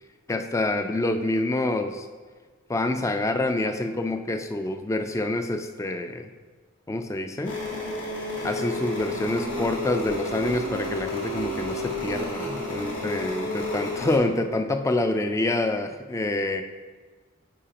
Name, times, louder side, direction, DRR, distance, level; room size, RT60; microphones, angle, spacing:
voice 1, 0.3-2.1 2.7-6.3 6.9-7.6 8.4-16.6, left 2 dB, 15° left, 7 dB, 0.3 m, -27 dB
sound 1, 7.4-14.2, left 1 dB, 75° left, 2.1 m, -31 dB
10.0 x 4.7 x 2.9 m, 1.4 s
head